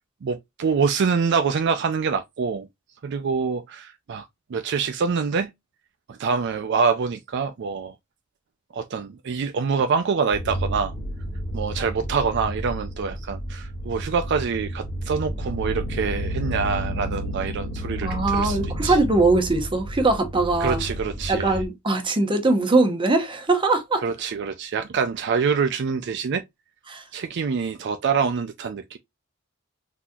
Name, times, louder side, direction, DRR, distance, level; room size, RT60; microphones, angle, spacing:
voice 1, 0.2-2.7 3.0-5.5 6.1-7.9 8.7-10.9 11.5-19.0 20.6-21.6 24.0-26.4 27.1-29.0, right 5 dB, 55° right, 0.4 m, -25 dB
sound 1, 10.3-21.7, equal, 25° left, 1.8 m, -31 dB
voice 2, 18.0-20.8 21.3-24.0 26.9-27.0, right 3 dB, 25° right, 0.8 m, -21 dB
3.9 x 2.8 x 2.3 m
head